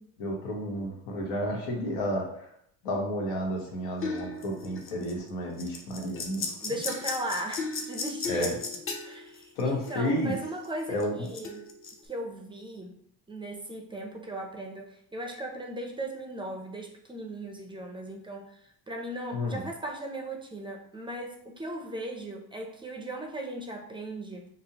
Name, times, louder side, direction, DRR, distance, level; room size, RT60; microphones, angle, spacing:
voice 1, 0.2-2.5 2.8-6.8 8.3-8.5 9.6-10.3 10.9-11.3 19.3-19.7, equal, 90° left, -1 dB, 1.2 m, -31 dB
sound 1, 4.0-5.3 5.6-10.2 10.4-12.0, left 4 dB, 35° left, 0.6 m, -36 dB
voice 2, 6.6-8.6 9.0-11.6 12.0-13.0 13.3-24.5, right 1 dB, 15° right, 2 dB, 0.4 m, -37 dB
5.2 x 2.1 x 2.8 m, 0.72 s
cardioid pair, 115°, 36 cm